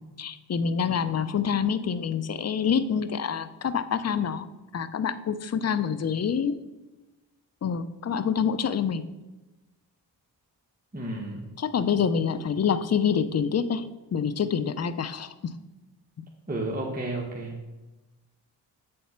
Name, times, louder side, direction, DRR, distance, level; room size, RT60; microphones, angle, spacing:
voice 1, 0.0-4.5 4.7-6.6 7.6-9.0 11.6-15.5, left 7 dB, 35° left, 14 dB, 0.6 m, -27 dB
voice 2, 10.9-11.5 16.5-17.7, right 2 dB, 20° right, -2 dB, 1.4 m, -32 dB
7.8 x 4.2 x 5.8 m, 1.1 s
supercardioid pair, 50°, 43 cm